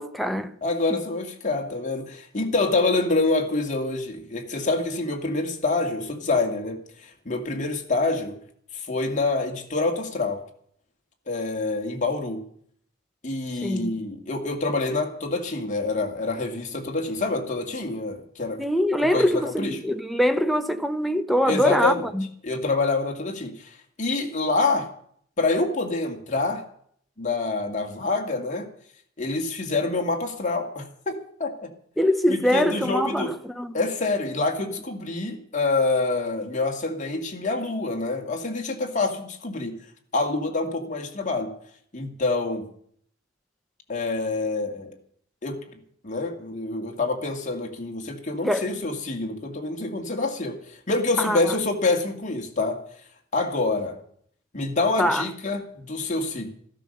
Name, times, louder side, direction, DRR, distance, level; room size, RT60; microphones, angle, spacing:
voice 1, 0.0-0.5 13.6-13.9 18.6-22.3 32.0-33.7 48.4-48.7 51.2-51.5 55.0-55.2, equal, ahead, 0.8 m, -23 dB
voice 2, 0.6-8.3 8.9-10.4 11.3-12.4 13.2-18.6 19.0-19.8 21.5-22.0 22.4-24.9 25.4-26.6 27.2-28.7 29.2-31.7 32.3-33.3 33.7-39.7 40.1-41.5 41.9-42.6 43.9-44.9 45.4-45.6 46.0-50.6 50.9-52.8 53.3-54.0 54.5-56.5, left 3 dB, 40° left, 2.1 m, -26 dB
13.5 x 12.5 x 6.7 m
head